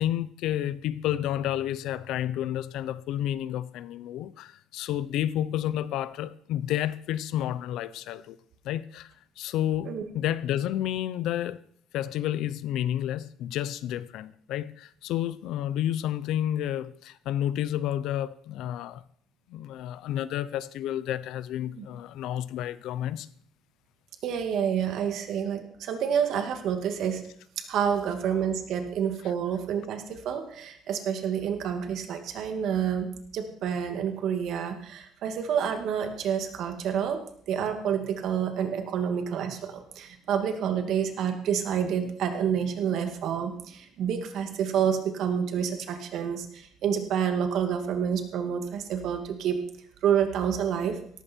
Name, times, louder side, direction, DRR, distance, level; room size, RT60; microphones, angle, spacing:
voice 1, 0.0-8.4 8.6-9.1 9.4-11.6 11.9-19.0 19.5-23.3, left 11 dB, 65° left, 0.7 m, -30 dB
voice 2, 24.2-27.2 27.6-33.1 33.3-37.2 37.5-49.6 50.0-51.0, right 8 dB, 55° right, 2.3 m, -28 dB
17.5 x 14.5 x 4.6 m
cardioid pair, 175°, 0 cm